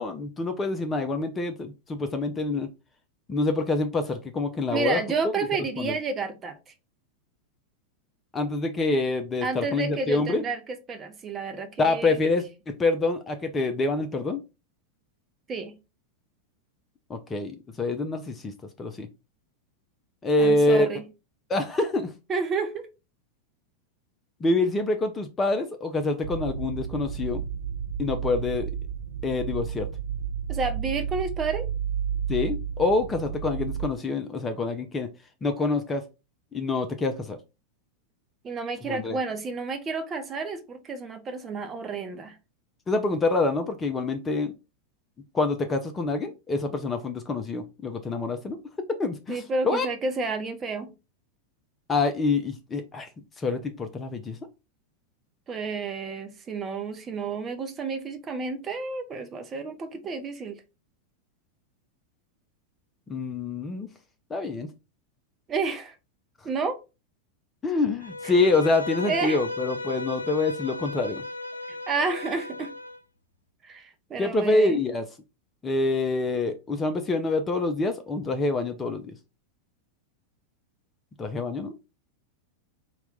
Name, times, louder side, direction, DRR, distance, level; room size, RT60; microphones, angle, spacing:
voice 1, 0.0-2.7 3.3-5.0 5.8-6.0 8.3-10.4 11.8-14.4 17.1-18.5 18.8-19.1 20.2-20.9 21.5-22.1 24.4-27.4 28.0-28.7 29.2-29.9 32.3-35.1 35.4-36.0 36.5-37.4 38.9-39.2 42.9-44.5 45.3-48.6 48.9-49.9 51.9-53.1 53.4-54.4 63.1-63.9 64.3-64.7 67.6-71.2 74.2-75.0 75.6-79.1 81.2-81.7, left 3 dB, 20° left, 0.5 m, -26 dB
voice 2, 4.7-6.7 9.4-10.6 10.9-12.2 15.5-15.7 20.4-21.0 22.3-22.9 30.5-31.7 38.4-42.4 49.3-50.9 55.5-60.6 65.5-65.9 66.4-66.8 68.2-68.4 69.0-69.4 71.7-72.7 73.6-74.8, right 4 dB, 25° right, 0.7 m, -30 dB
sound 1, 26.2-33.9, right 8 dB, 70° right, 0.3 m, -32 dB
Bowed string instrument, 68.0-73.0, left 2 dB, 85° left, 0.4 m, -35 dB
4.3 x 2.2 x 3.8 m
figure-of-eight pair, 90°, 0 cm